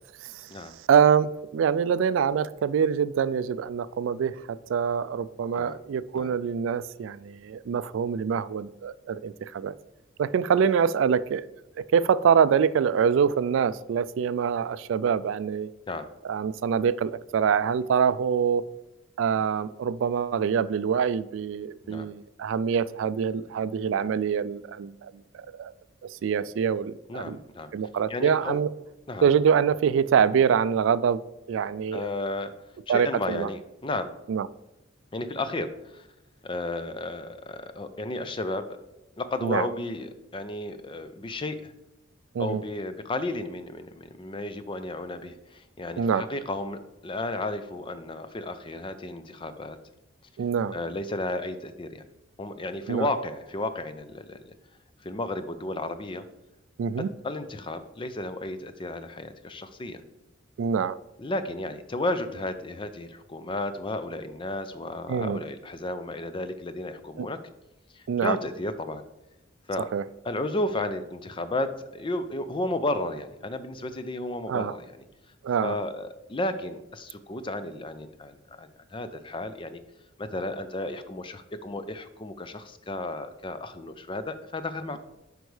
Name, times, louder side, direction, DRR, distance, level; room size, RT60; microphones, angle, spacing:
voice 1, 0.8-9.7 10.2-11.4 11.9-15.7 16.2-18.6 19.2-25.7 26.1-27.4 27.7-28.7 29.2-31.2 31.5-32.1 32.9-33.5 34.3-34.5 39.4-39.7 42.3-42.6 46.0-46.2 50.4-50.7 52.9-53.1 56.8-57.1 60.6-61.0 65.1-65.4 67.2-67.3 68.1-68.4 69.9-70.0 74.4-74.7 75.4-75.8, right 7 dB, 70° right, 16 dB, 0.3 m, -25 dB
voice 2, 27.1-27.7 28.1-28.6 29.1-29.3 31.9-32.5 32.9-34.1 35.1-36.1 36.4-38.8 39.2-41.7 42.4-49.8 50.7-52.0 52.4-54.4 55.0-56.3 57.0-60.0 61.2-67.4 67.9-69.1 69.7-69.9 70.2-75.0 75.6-79.8 80.2-85.0, left 2 dB, 25° left, 10 dB, 0.5 m, -33 dB
7.9 x 5.2 x 3.2 m, 0.98 s
head